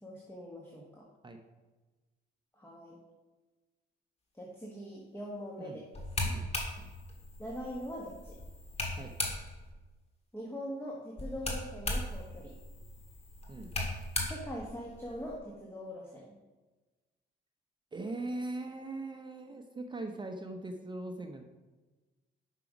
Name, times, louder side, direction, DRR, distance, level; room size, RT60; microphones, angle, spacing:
voice 1, 0.0-1.1 2.6-3.0 4.3-5.8 7.4-8.4 10.3-12.5 14.3-16.4, equal, 10° left, -3 dB, 1.4 m, -42 dB
sound 1, 5.9-9.7 11.2-15.4, left 2 dB, 30° left, 1.7 m, -38 dB
voice 2, 17.9-21.4, right 2 dB, 25° right, 5 dB, 0.7 m, -40 dB
5.9 x 5.6 x 5.1 m, 1.2 s
cardioid pair, 90°, 20 cm